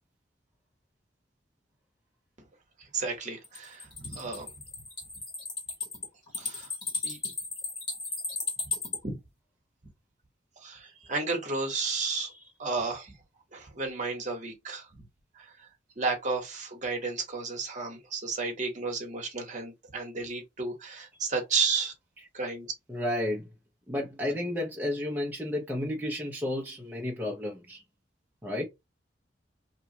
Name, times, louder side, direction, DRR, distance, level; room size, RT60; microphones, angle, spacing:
voice 1, 2.9-4.5 6.4-6.7 7.0-7.2 9.0-9.2 10.6-13.1 13.5-15.0 15.3-15.7 16.0-21.9 22.3-22.7, right 4 dB, 40° right, 1.0 m, -32 dB
sound 1, 3.4-9.0, left 4 dB, 25° left, 1.2 m, -35 dB
voice 2, 22.9-23.5 23.9-27.8 28.4-28.6, left 1 dB, 10° right, 0.6 m, -32 dB
2.9 x 2.3 x 2.7 m
head